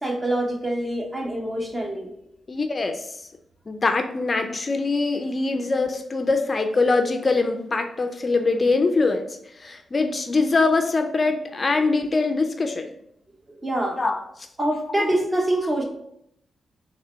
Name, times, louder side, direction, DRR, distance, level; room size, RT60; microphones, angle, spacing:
voice 1, 0.0-2.1 13.6-14.0 14.6-15.8, right 1 dB, 25° right, 1 dB, 1.1 m, -25 dB
voice 2, 2.5-3.3 3.7-9.3 9.6-12.9 14.0-14.2 15.0-15.1, left 3 dB, 40° left, 6 dB, 0.4 m, -23 dB
3.8 x 3.0 x 4.3 m, 0.74 s
cardioid pair, 75°, 0 cm